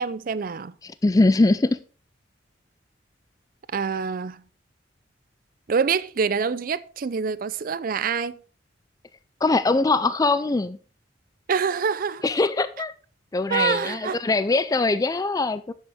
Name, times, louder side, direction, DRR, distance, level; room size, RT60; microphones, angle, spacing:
voice 1, 0.0-0.7 3.7-4.4 5.7-8.4 11.5-12.2 13.5-14.2, right 6 dB, 50° right, 0.4 m, -26 dB
voice 2, 0.8-1.8 9.4-10.8 12.2-12.9 13.3-15.7, left 3 dB, 20° left, 0.4 m, -22 dB
10.5 x 7.3 x 3.4 m
head